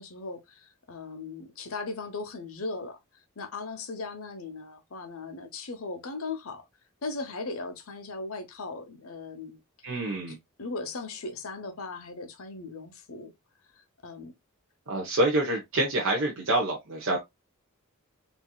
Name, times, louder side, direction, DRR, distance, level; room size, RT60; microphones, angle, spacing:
voice 1, 0.0-3.0 3.4-6.6 7.0-9.6 9.9-10.0 10.6-13.3 13.8-14.3, left 3 dB, 75° left, 0.8 m, -38 dB
voice 2, 9.8-10.3 14.9-17.2, right 1 dB, 60° right, 1.0 m, -27 dB
4.3 x 2.7 x 2.2 m
head